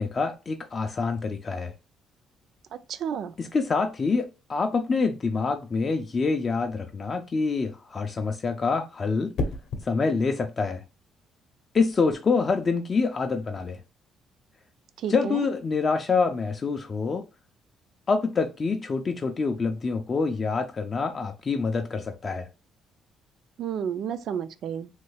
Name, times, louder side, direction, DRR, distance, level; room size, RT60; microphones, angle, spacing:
voice 1, 0.0-1.7 3.4-9.4 9.8-10.8 11.7-13.8 15.1-17.2 18.1-22.5, left 4 dB, 30° left, 0.4 m, -26 dB
voice 2, 2.7-3.3 15.0-15.5 23.6-24.9, right 8 dB, 60° right, 0.4 m, -31 dB
sound 1, 9.3-9.9 11.9-12.1, left 2 dB, 65° left, 0.7 m, -31 dB
3.1 x 2.3 x 3.2 m
cardioid pair, 145°, 0 cm